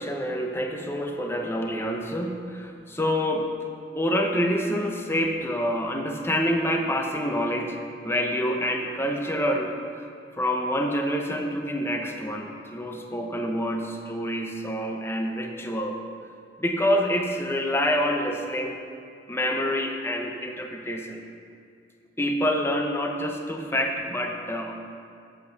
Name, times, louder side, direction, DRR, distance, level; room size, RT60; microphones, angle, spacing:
voice 1, 0.0-3.5 3.9-10.1 10.4-16.0 16.6-18.8 19.3-21.2 22.2-24.7, equal, 15° left, 3 dB, 0.8 m, -27 dB
8.1 x 8.0 x 5.9 m, 2.3 s
head